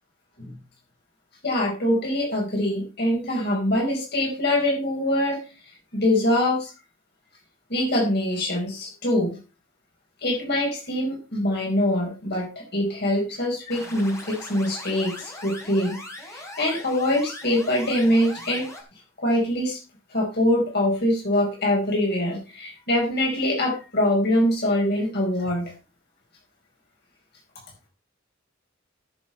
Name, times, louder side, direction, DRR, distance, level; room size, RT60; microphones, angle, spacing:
voice 1, 1.4-5.4 5.9-6.7 7.7-9.3 10.2-12.5 12.7-18.7 19.2-19.8 20.1-25.7, left 1 dB, 55° left, -1 dB, 4.6 m, -24 dB
sound 1, 13.7-18.8, left 1 dB, 15° left, 3.6 m, -40 dB
14.0 x 7.4 x 4.4 m, 0.32 s
head